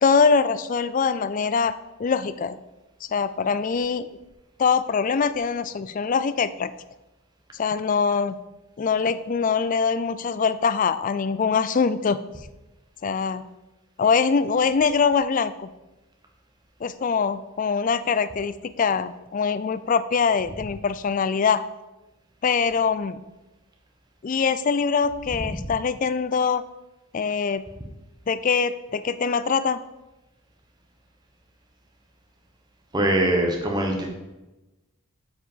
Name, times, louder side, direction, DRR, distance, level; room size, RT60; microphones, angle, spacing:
voice 1, 0.0-2.6 3.0-4.1 4.6-6.7 7.5-8.4 8.8-12.2 13.0-13.4 14.0-15.7 16.8-21.6 22.4-23.2 24.2-26.6 27.1-27.6 28.3-29.8, left 5 dB, 35° left, 14 dB, 0.3 m, -23 dB
voice 2, 32.9-34.1, right 1 dB, 20° right, 1 dB, 1.2 m, -22 dB
8.0 x 4.9 x 5.6 m, 1.0 s
head